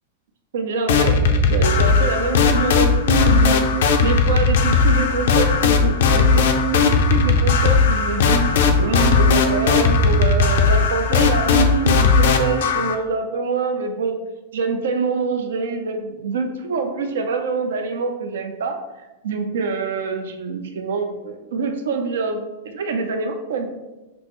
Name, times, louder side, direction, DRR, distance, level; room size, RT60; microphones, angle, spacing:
voice 1, 0.5-1.2 1.5-3.6 4.0-6.4 6.7-8.4 8.8-14.1 14.5-23.7, right 4 dB, 85° right, 6 dB, 0.6 m, -25 dB
sound 1, 0.9-12.9, left 4 dB, 75° left, 0.5 m, -17 dB
6.0 x 2.0 x 3.1 m, 1.1 s
supercardioid pair, 145°, 0 cm